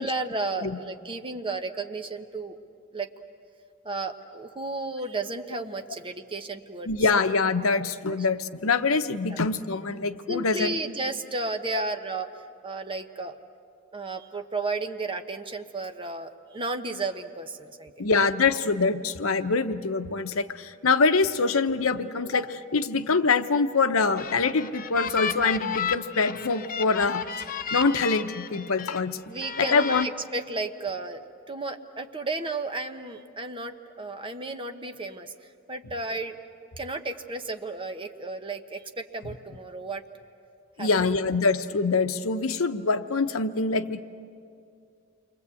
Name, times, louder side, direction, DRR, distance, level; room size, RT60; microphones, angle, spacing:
voice 1, 0.0-2.6 2.9-3.1 3.8-6.9 9.3-9.4 10.3-12.3 12.6-13.4 13.9-17.9 29.3-35.3 35.7-36.4 36.8-40.0 40.8-40.9, right 3 dB, 25° right, 6 dB, 1.1 m, -33 dB
voice 2, 6.9-10.8 18.0-27.2 27.7-29.2 29.6-30.1 40.8-44.0, left 4 dB, 80° left, 9 dB, 0.9 m, -24 dB
sound 1, 23.9-29.0 29.4-30.0, left 6 dB, 45° left, 0.9 m, -33 dB
29.0 x 23.0 x 8.4 m, 2.5 s
head